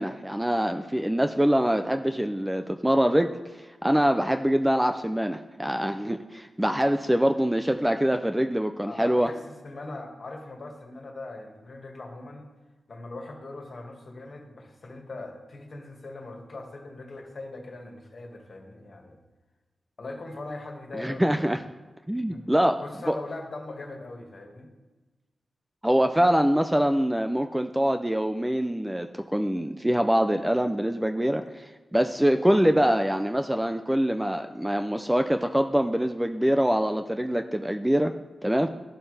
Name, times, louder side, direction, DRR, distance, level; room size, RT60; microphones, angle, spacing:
voice 1, 0.0-3.3 3.6-9.3 20.9-21.6 22.1-23.2 25.8-38.1 38.4-38.7, equal, 5° right, 6 dB, 0.4 m, -24 dB
voice 2, 8.9-12.5 12.9-19.2 20.0-21.4 22.3-22.5 22.8-24.7, left 2 dB, 45° left, 1 dB, 1.9 m, -40 dB
12.0 x 11.5 x 3.4 m, 1.2 s
wide cardioid pair, 145°, 0 cm